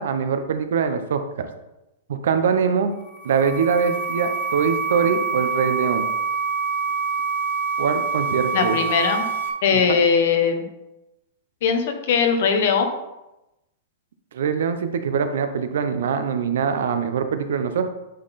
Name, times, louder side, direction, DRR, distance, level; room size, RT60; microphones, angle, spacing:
voice 1, 0.0-1.5 2.1-2.9 3.2-6.1 7.8-8.8 9.7-10.0 14.3-17.9, right 6 dB, 70° right, 8 dB, 0.8 m, -23 dB
sound 1, 3.0-9.5, right 5 dB, 75° left, 1.2 m, -26 dB
voice 2, 8.5-9.2 9.6-10.6 11.6-12.9, left 6 dB, 50° left, 6 dB, 1.0 m, -20 dB
9.4 x 4.0 x 4.2 m, 0.95 s
supercardioid pair, 175°, 0 cm